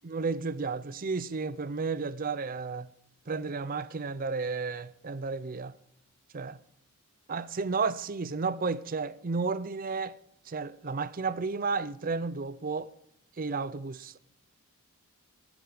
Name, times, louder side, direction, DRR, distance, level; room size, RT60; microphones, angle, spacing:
voice 1, 0.0-2.9 3.3-5.7 6.3-6.6 7.3-10.1 10.5-12.9 13.4-14.2, right 4 dB, 40° right, 0.6 m, -32 dB
16.0 x 9.0 x 5.0 m
head